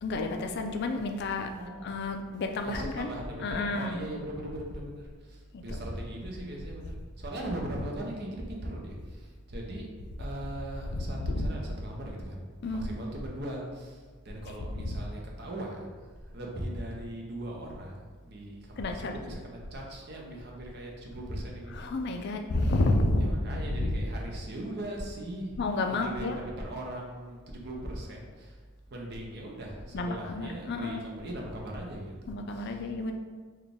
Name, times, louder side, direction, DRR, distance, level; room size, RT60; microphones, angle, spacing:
voice 1, 0.0-1.5 1.8-3.1 3.4-4.0 5.5-5.8 11.3-11.5 12.6-12.9 18.8-19.1 21.8-23.4 23.8-23.9 25.6-26.4 29.9-31.0 32.3-33.1, left 2 dB, 50° left, 4 dB, 0.3 m, -30 dB
voice 2, 1.6-2.0 2.6-9.9 10.2-12.4 12.7-22.3 23.2-25.6 25.9-28.6 28.9-32.9, right 1 dB, 50° right, -1 dB, 0.6 m, -39 dB
4.0 x 2.3 x 3.5 m, 1.5 s
head